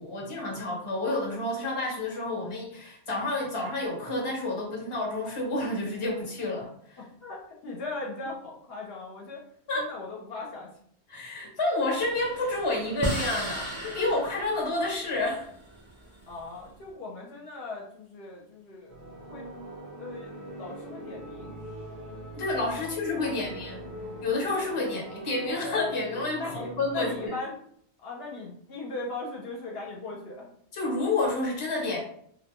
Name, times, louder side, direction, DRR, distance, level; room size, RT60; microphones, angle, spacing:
voice 1, 0.0-7.0 9.7-9.9 11.1-15.5 22.4-23.8 24.2-27.3 30.7-32.0, left 2 dB, 35° left, -2 dB, 0.7 m, -29 dB
voice 2, 7.0-9.4 9.7-10.7 16.3-19.0 19.3-19.5 20.0-21.5 22.7-23.5 26.4-27.6 28.0-30.5, left 3 dB, 70° left, -2 dB, 0.8 m, -39 dB
sound 1, 12.0-16.6, right 1 dB, 20° right, 0.4 m, -36 dB
sound 2, 18.9-27.3, right 1 dB, 80° right, 1.0 m, -42 dB
2.5 x 2.1 x 2.8 m, 0.65 s
omnidirectional pair, 1.1 m